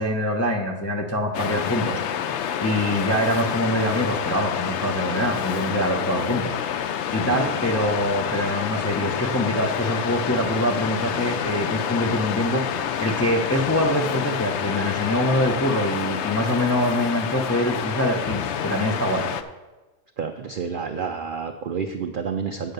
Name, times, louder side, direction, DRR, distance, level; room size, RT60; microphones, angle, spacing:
voice 1, 0.0-2.3 2.6-6.6 7.1-19.3, equal, 20° left, 1 dB, 0.4 m, -24 dB
Waves surf, 1.3-19.4, left 8 dB, 65° left, 0.7 m, -28 dB
voice 2, 20.2-22.7, right 6 dB, 80° right, 6 dB, 0.4 m, -29 dB
8.7 x 5.6 x 6.6 m, 1.2 s
omnidirectional pair, 1.5 m